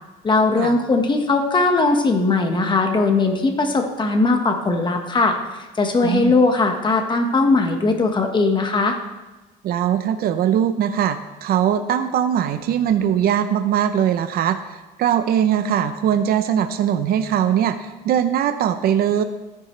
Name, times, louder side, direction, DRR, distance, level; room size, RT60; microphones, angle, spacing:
voice 1, 0.2-5.4 5.8-9.0, left 3 dB, 25° left, 4 dB, 1.5 m, -19 dB
voice 2, 6.0-6.4 9.6-19.2, right 9 dB, 65° right, 9 dB, 0.7 m, -21 dB
13.5 x 10.5 x 3.3 m, 1.2 s
cardioid pair, 110°, 17 cm